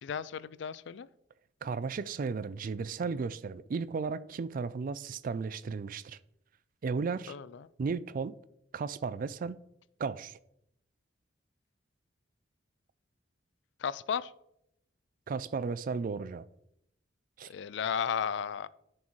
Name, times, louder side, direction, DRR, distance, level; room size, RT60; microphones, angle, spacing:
voice 1, 0.0-1.1 7.3-7.7 13.8-14.3 17.5-18.7, left 7 dB, 65° left, 0.4 m, -34 dB
voice 2, 1.6-6.2 6.8-7.3 7.8-8.3 8.7-9.6 10.0-10.4 15.3-16.4 17.4-17.5, right 5 dB, 45° right, 0.3 m, -34 dB
10.5 x 6.3 x 3.1 m
head